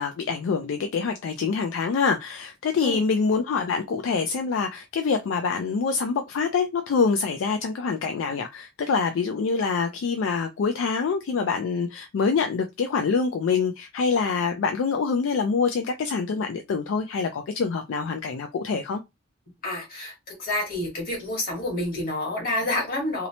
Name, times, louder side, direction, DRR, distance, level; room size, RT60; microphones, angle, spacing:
voice 1, 0.0-19.0, left 5 dB, 70° left, 0.3 m, -25 dB
voice 2, 19.6-23.3, left 1 dB, 45° left, 1.3 m, -29 dB
2.8 x 2.0 x 2.7 m
head